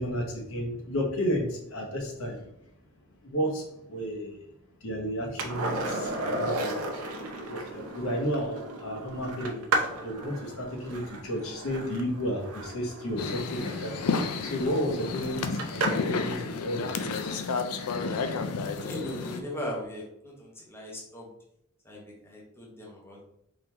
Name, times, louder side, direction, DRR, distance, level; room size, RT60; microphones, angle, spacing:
voice 1, 0.0-2.4 3.2-4.5 4.8-9.7 10.0-17.6, equal, 65° left, 0 dB, 1.0 m, -33 dB
Skateboard, 5.4-16.2 18.8-18.9, right 2 dB, 75° right, 0.6 m, -34 dB
sound 1, 13.2-19.4, left 4 dB, 90° left, 0.4 m, -31 dB
voice 2, 18.8-21.3 21.8-23.2, left 1 dB, 10° left, -3 dB, 0.9 m, -38 dB
3.8 x 2.9 x 3.2 m, 0.77 s
head